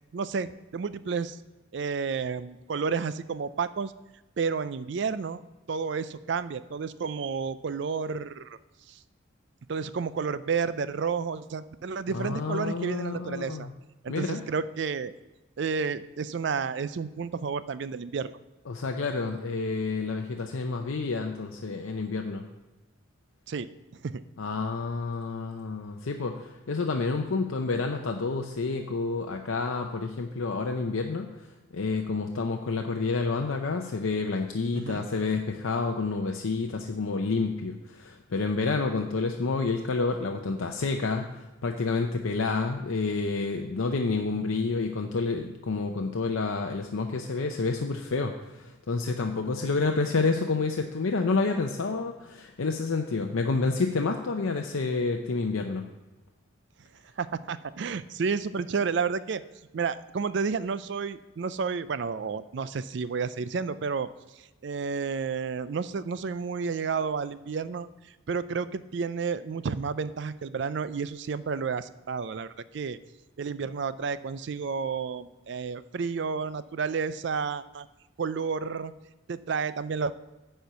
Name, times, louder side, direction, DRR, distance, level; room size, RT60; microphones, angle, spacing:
voice 1, 0.1-1.4 1.7-3.9 4.4-5.4 5.7-8.6 8.9-9.0 9.7-13.7 14.0-15.1 15.6-18.3 23.5-23.7 24.0-24.2 34.7-35.1 57.2-59.4 59.7-64.1 64.6-67.9 68.3-73.0 73.4-77.9 78.2-78.9 79.3-80.1, right 5 dB, 55° right, 14 dB, 0.4 m, -31 dB
voice 2, 12.1-13.7 14.1-14.4 18.7-22.4 24.4-31.3 31.7-55.9, left 4 dB, 85° left, 3 dB, 0.6 m, -29 dB
9.3 x 4.4 x 6.7 m, 1.1 s
head